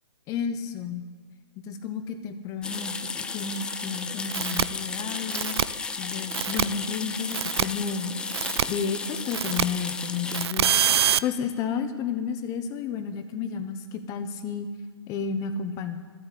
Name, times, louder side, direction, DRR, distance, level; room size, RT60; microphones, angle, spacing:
voice 1, 0.3-1.0 1.6-5.6 6.0-8.1 8.7-10.7 11.2-14.7 15.1-16.0, left 6 dB, 25° left, 8 dB, 1.2 m, -31 dB
sound 1, 2.6-10.5, left 4 dB, 5° left, 0.4 m, -34 dB
sound 2, 4.3-4.6 5.3-5.6 6.3-6.6 7.3-7.6 8.3-8.6 9.3-9.6 10.3-11.2, right 9 dB, 65° right, 0.5 m, -24 dB
13.0 x 8.9 x 8.4 m, 1.5 s
hypercardioid pair, 145°, 14 cm